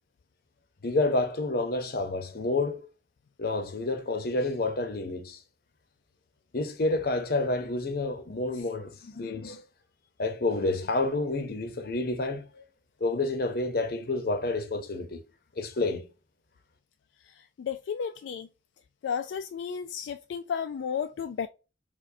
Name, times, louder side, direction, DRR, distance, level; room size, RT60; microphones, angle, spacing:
voice 1, 0.8-2.8 3.4-5.4 6.5-9.6 10.2-12.4 13.0-15.2 15.6-16.0, left 2 dB, 55° left, 0.7 m, -29 dB
voice 2, 17.3-18.5 19.0-21.5, left 7 dB, 80° left, 0.3 m, -33 dB
4.7 x 2.2 x 2.6 m
head